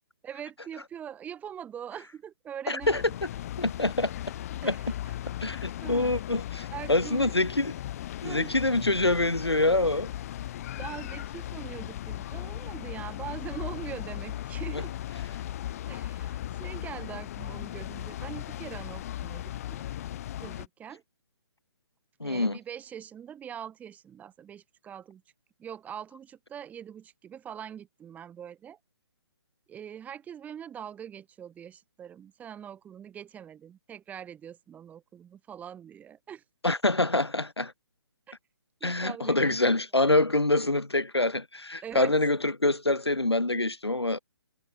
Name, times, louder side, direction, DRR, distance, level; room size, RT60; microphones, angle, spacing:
voice 1, 0.2-3.2 4.6-5.1 5.8-6.2 6.7-7.3 8.2-8.5 10.8-14.9 15.9-19.4 19.7-19.8 20.4-21.0 22.2-25.2 25.6-28.8 29.7-36.4 38.3-38.4 38.8-39.6 40.0-40.2 41.8-42.4, right 9 dB, 10° right, 5.4 m, -42 dB
voice 2, 2.7-3.0 3.6-4.1 4.6-4.8 5.4-7.7 8.2-10.1 14.7-14.8 22.2-22.6 36.6-37.7 38.8-44.2, left 2 dB, 90° left, 1.8 m, -25 dB
sound 1, 2.8-20.7, left 12 dB, 35° left, 4.0 m, -37 dB
figure-of-eight pair, 140°, 13 cm